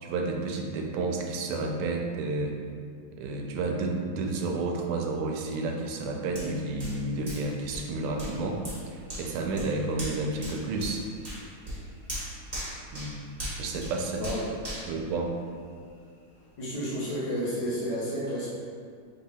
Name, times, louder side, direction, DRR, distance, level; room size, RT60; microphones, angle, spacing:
voice 1, 0.0-2.5 3.1-8.6 8.9-11.0 12.9-13.2 13.6-14.2 14.9-15.3, right 3 dB, 85° right, 1 dB, 1.4 m, -31 dB
Hands, 6.3-15.9 16.3-16.5, equal, 25° right, 1.1 m, -40 dB
voice 2, 14.1-14.5 16.6-18.5, equal, 60° left, -7 dB, 1.6 m, -31 dB
3.7 x 2.8 x 4.1 m, 2.3 s
omnidirectional pair, 2.3 m